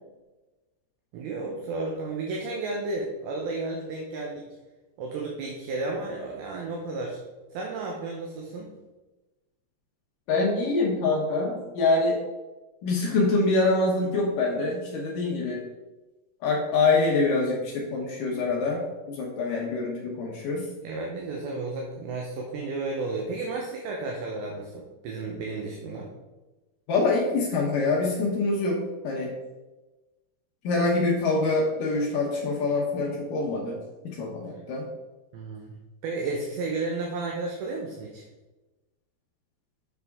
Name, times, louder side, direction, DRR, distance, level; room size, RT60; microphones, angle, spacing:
voice 1, 1.1-4.5 5.0-7.2 7.5-8.7 20.8-26.1 35.3-35.8 36.0-38.2, right 3 dB, 75° right, 0 dB, 2.3 m, -32 dB
voice 2, 10.3-12.2 12.8-15.6 16.4-20.6 26.9-29.3 30.6-33.8 34.0-34.8, left 3 dB, 75° left, -2 dB, 2.0 m, -25 dB
7.8 x 6.6 x 3.5 m, 1.1 s
omnidirectional pair, 5.3 m